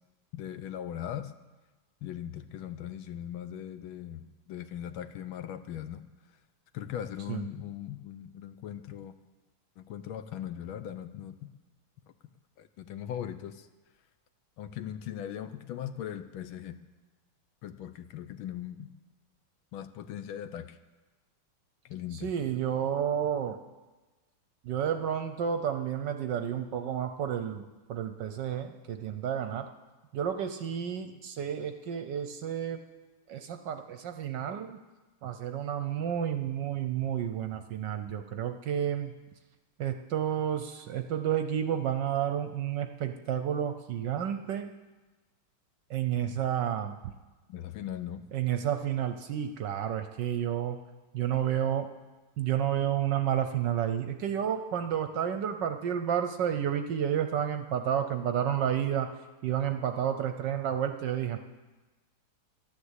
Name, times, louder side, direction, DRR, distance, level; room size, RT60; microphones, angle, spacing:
voice 1, 0.3-1.3 2.0-6.0 6.7-9.1 9.8-11.5 12.6-13.7 14.6-16.8 17.6-18.9 19.7-20.8 21.8-22.3 47.5-48.2, left 10 dB, 75° left, 11 dB, 1.4 m, -39 dB
voice 2, 22.2-23.6 24.6-29.7 30.1-32.8 33.3-34.8 35.2-39.1 39.8-44.7 45.9-47.0 48.3-50.8 51.1-51.9 52.4-59.1 59.4-61.4, right 9 dB, 65° right, 8 dB, 1.2 m, -31 dB
12.0 x 11.0 x 8.1 m, 1.2 s
omnidirectional pair, 2.4 m